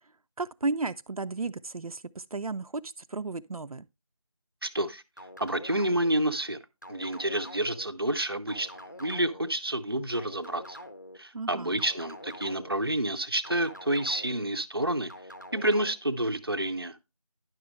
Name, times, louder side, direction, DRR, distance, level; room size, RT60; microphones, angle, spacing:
voice 1, 0.4-3.9 11.3-11.8, right 3 dB, 80° right, 0.6 m, -34 dB
voice 2, 4.6-5.0 5.4-6.6 6.9-8.7 9.0-10.8 11.2-15.1 15.5-17.0, right 1 dB, 40° right, 0.6 m, -29 dB
sound 1, 5.2-6.2 6.8-7.9 8.5-9.5 10.1-11.2 11.8-12.8 13.4-14.5 15.1-15.9, equal, 30° left, 0.7 m, -45 dB
10.5 x 6.2 x 3.1 m
figure-of-eight pair, 180°, 18 cm